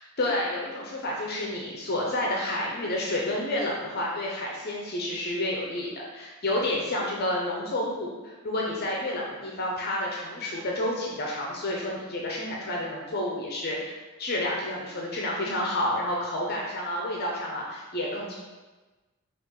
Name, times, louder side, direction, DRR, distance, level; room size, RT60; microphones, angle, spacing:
voice 1, 0.0-13.9 14.2-18.4, left 1 dB, 45° left, -2 dB, 0.6 m, -30 dB
5.5 x 2.4 x 3.7 m, 1.2 s
head